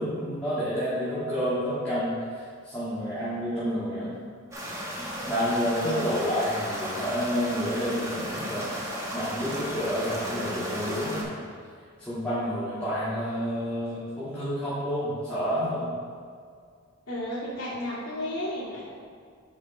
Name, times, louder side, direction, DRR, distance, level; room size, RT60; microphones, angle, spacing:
voice 1, 0.0-4.1 5.2-8.8 9.1-11.4 12.0-15.9, equal, 5° left, -14 dB, 2.0 m, -29 dB
sound 1, 4.5-11.2, equal, 15° right, 1.0 m, -34 dB
voice 2, 17.1-18.8, left 1 dB, 80° left, -9 dB, 2.0 m, -32 dB
6.9 x 5.2 x 4.9 m, 2.1 s
head